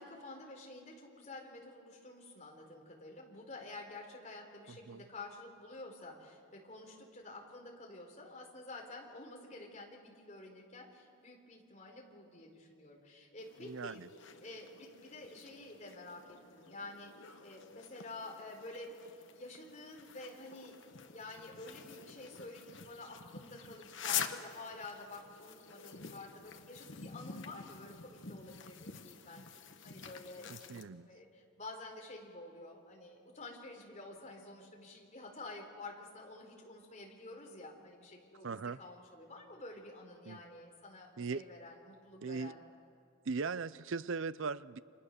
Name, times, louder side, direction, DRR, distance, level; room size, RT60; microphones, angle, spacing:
voice 1, 0.0-18.9 19.3-29.5 29.8-30.5 31.1-42.6, left 2 dB, 35° left, 4.1 m, -50 dB
voice 2, 4.7-5.0 13.6-14.1 30.5-31.1 38.4-38.8 40.3-40.4 41.2-41.4 42.2-42.5 43.3-44.8, right 4 dB, 65° right, 0.6 m, -39 dB
sound 1, 13.4-30.8, left 7 dB, 60° left, 1.3 m, -47 dB
29.5 x 25.5 x 6.7 m
head